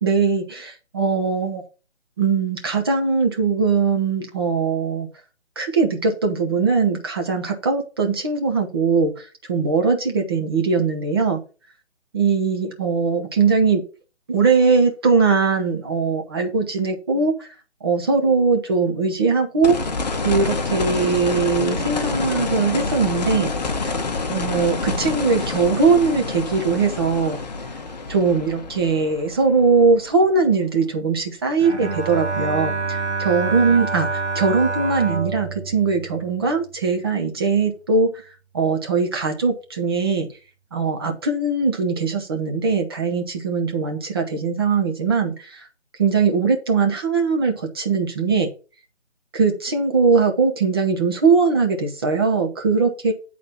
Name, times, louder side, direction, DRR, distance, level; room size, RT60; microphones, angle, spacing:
voice 1, 0.0-1.6 2.2-5.1 5.6-11.4 12.1-13.8 14.3-17.5 17.8-19.8 20.2-23.5 23.8-23.9 24.3-27.4 28.1-38.1 38.5-40.3 40.7-45.7 46.0-48.5 49.3-53.1, right 4 dB, 20° right, 3 dB, 0.9 m, -20 dB
sound 1, 19.6-30.5 32.8-32.9, left 3 dB, 35° left, 1.0 m, -27 dB
Bowed string instrument, 31.6-36.9, right 4 dB, 70° right, 1.6 m, -27 dB
8.9 x 4.2 x 5.7 m, 0.33 s
figure-of-eight pair, 150°, 35 cm